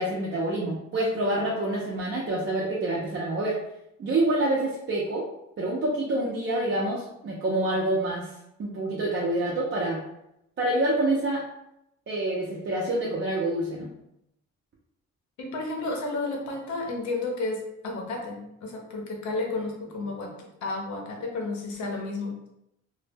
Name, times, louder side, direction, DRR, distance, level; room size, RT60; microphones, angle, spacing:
voice 1, 0.0-3.6 4.0-5.2 5.6-8.3 8.6-10.0 10.6-11.4 12.1-13.9, right 1 dB, 40° right, -5 dB, 0.5 m, -27 dB
voice 2, 15.4-22.5, left 2 dB, 70° left, 1 dB, 0.8 m, -32 dB
2.1 x 2.0 x 3.3 m, 0.82 s
cardioid pair, 90°, 30 cm